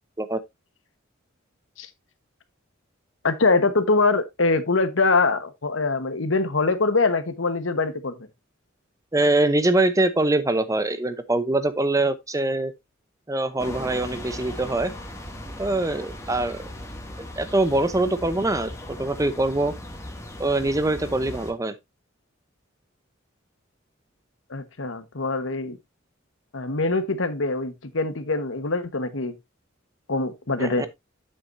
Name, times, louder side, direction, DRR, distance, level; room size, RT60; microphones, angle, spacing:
voice 1, 3.2-8.2 24.5-25.8 26.5-29.3 30.1-30.9, left 3 dB, 70° left, 1.2 m, -23 dB
voice 2, 9.1-12.7 13.3-14.9 15.6-16.7 17.2-19.7 20.4-21.7 30.6-30.9, right 2 dB, 15° right, 0.7 m, -23 dB
sound 1, 13.6-21.5, left 1 dB, 15° left, 2.0 m, -38 dB
9.5 x 8.0 x 2.6 m
head